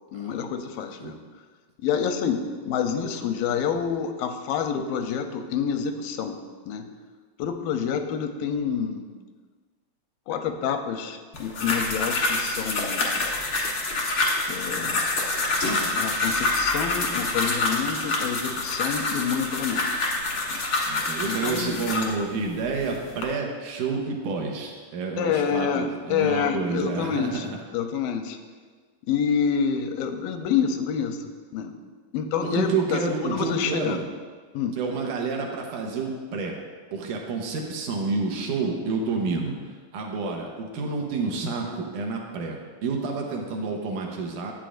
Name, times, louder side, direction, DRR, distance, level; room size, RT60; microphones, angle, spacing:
voice 1, 0.1-1.2 1.8-6.4 6.7-6.9 7.4-9.1 10.3-13.3 14.5-15.0 15.9-20.0 20.5-20.6 21.3-21.8 25.2-27.5 27.7-28.4 29.1-31.7 32.1-34.0 34.5-34.8, left 7 dB, 90° left, 6 dB, 2.3 m, -28 dB
sound 1, 11.3-22.1 22.8-23.2, left 2 dB, 60° left, 1.2 m, -26 dB
voice 2, 20.9-27.6 32.4-34.1 34.8-36.6 36.9-44.5, right 4 dB, 70° right, 0 dB, 2.3 m, -29 dB
11.5 x 8.9 x 2.5 m, 1.5 s
omnidirectional pair, 4.0 m